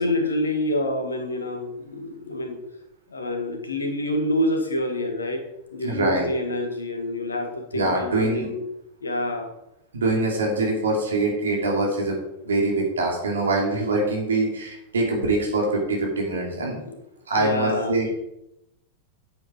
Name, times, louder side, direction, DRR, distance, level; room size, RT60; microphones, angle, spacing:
voice 1, 0.0-2.6 3.1-5.4 5.7-8.6 9.0-9.5 16.9-17.0 17.4-18.0, left 1 dB, 75° left, 3 dB, 1.9 m, -27 dB
voice 2, 5.8-6.3 7.7-8.5 9.9-12.2 12.4-16.8 17.3-18.1, right 2 dB, 70° right, 0 dB, 2.8 m, -24 dB
8.9 x 8.2 x 4.5 m, 0.86 s
figure-of-eight pair, 90°, 0 cm